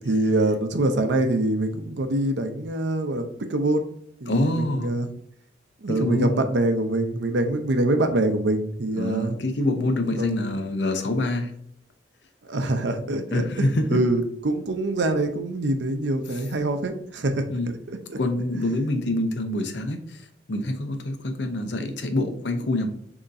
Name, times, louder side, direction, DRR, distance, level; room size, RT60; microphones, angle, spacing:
voice 1, 0.1-3.9 4.2-5.1 5.8-9.4 10.2-10.6 12.5-17.5 18.1-18.2, right 2 dB, 80° right, 7 dB, 0.6 m, -24 dB
voice 2, 4.3-4.9 5.9-6.4 9.0-11.5 13.3-14.0 16.3-16.5 17.5-17.7 18.2-20.2 20.5-22.9, left 1 dB, 75° left, 6 dB, 0.7 m, -26 dB
6.3 x 2.9 x 2.6 m, 0.68 s
head